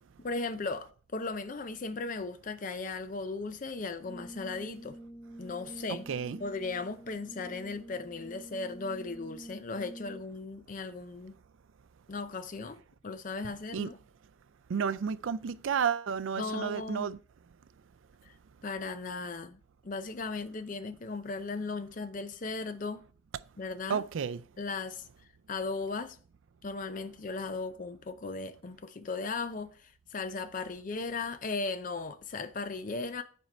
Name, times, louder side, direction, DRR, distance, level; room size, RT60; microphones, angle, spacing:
voice 1, 0.2-5.0 5.4-6.1 6.4-11.4 12.1-14.0 16.4-17.1 18.2-18.3 18.6-23.0 23.6-24.0 24.6-25.0 25.5-26.2 26.6-33.2, left 3 dB, 40° left, 0.5 m, -37 dB
Brass instrument, 4.0-10.4, right 1 dB, 10° right, 0.6 m, -48 dB
voice 2, 14.7-17.2 23.9-24.4, right 6 dB, 85° right, 0.4 m, -31 dB
8.0 x 4.5 x 4.3 m
head